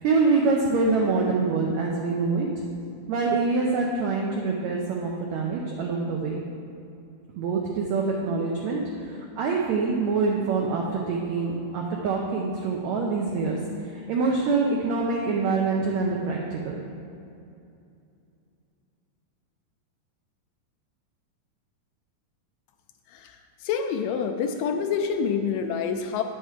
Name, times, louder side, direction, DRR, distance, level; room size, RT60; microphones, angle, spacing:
voice 1, 0.0-2.5 3.1-6.4 7.4-13.6 14.1-16.8, right 4 dB, 90° right, -1 dB, 1.6 m, -25 dB
voice 2, 23.6-26.2, left 6 dB, 80° left, 5 dB, 2.0 m, -27 dB
9.1 x 5.9 x 4.9 m, 2.6 s
omnidirectional pair, 4.1 m